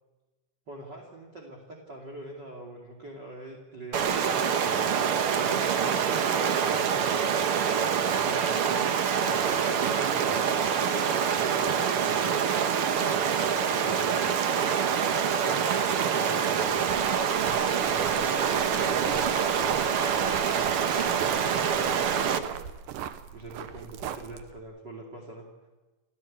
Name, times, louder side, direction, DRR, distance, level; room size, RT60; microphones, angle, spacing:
voice 1, 0.7-4.8 5.3-7.4 8.2-12.4 13.7-14.2 14.6-22.6 23.3-25.7, right 2 dB, 35° right, 0 dB, 3.0 m, -44 dB
Stream, 3.9-22.4, right 7 dB, 60° right, 1.6 m, -26 dB
sound 1, 16.7-24.6, right 9 dB, 85° right, 2.6 m, -39 dB
29.5 x 13.5 x 8.7 m, 1.2 s
omnidirectional pair, 3.8 m